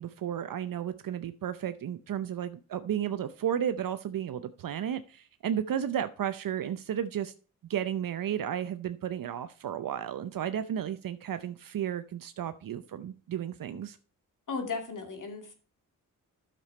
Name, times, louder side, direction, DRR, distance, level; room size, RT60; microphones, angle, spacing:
voice 1, 0.0-7.3 7.7-14.0, right 9 dB, 70° right, 0.7 m, -33 dB
voice 2, 14.5-15.5, left 4 dB, 60° left, 2.4 m, -35 dB
10.0 x 6.8 x 4.3 m
cardioid pair, 75°, 35 cm